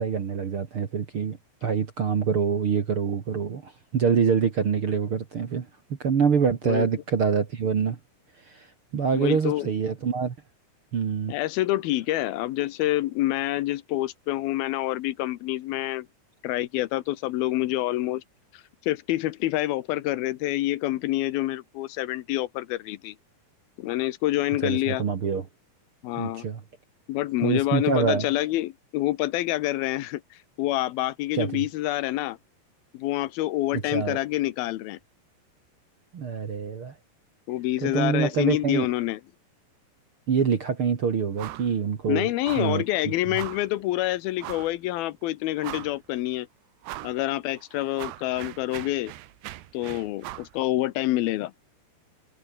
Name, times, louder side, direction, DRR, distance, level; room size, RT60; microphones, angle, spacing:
voice 1, 0.0-5.7 6.0-8.0 8.5-8.7 8.9-10.3 10.9-11.3 24.6-25.4 26.2-26.6 27.4-28.3 31.4-31.6 33.7-34.2 36.1-36.9 37.8-38.9 40.3-42.3 42.6-42.8, right 6 dB, 45° right, 1.9 m, -25 dB
voice 2, 9.1-9.7 11.3-16.1 16.4-18.2 18.5-23.1 23.8-25.0 26.0-26.5 27.1-32.4 32.9-35.0 37.5-39.2 42.1-46.5 47.0-49.1 49.7-51.5, left 16 dB, 75° left, 2.6 m, -27 dB
sound 1, 41.4-41.7 42.0-42.1 42.4-42.8 43.3-43.7 44.4-44.8 45.2-45.3 45.6-46.1 46.8-47.2 47.6-50.5, right 15 dB, 85° right, 3.3 m, -39 dB
omnidirectional pair, 4.7 m